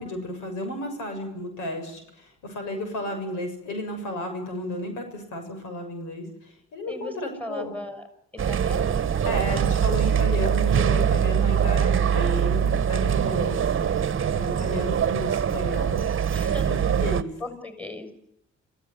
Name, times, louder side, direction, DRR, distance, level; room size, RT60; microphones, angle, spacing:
voice 1, 0.0-7.7 9.2-16.1 16.7-17.3, left 1 dB, 90° left, 6 dB, 7.1 m, -33 dB
voice 2, 7.4-8.0 8.4-9.0 14.5-14.6 16.3-16.7 17.4-18.1, left 1 dB, 5° left, 8 dB, 6.3 m, -37 dB
sound 1, 8.4-17.2, right 8 dB, 45° right, 1.2 m, -23 dB
27.5 x 16.5 x 9.9 m, 0.77 s
cardioid pair, 90°, 30 cm